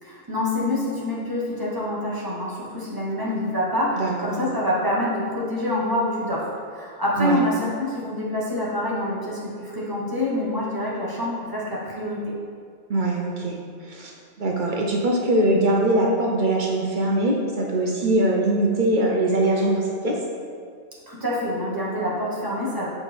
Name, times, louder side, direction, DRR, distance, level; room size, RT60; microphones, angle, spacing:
voice 1, 0.0-12.2 21.1-22.9, left 1 dB, 20° right, -6 dB, 1.1 m, -26 dB
voice 2, 4.0-4.3 7.2-7.4 12.9-13.6 13.9-14.1 14.4-20.2, right 1 dB, 50° right, -1 dB, 0.7 m, -22 dB
7.1 x 4.2 x 3.3 m, 2.1 s
omnidirectional pair, 1.2 m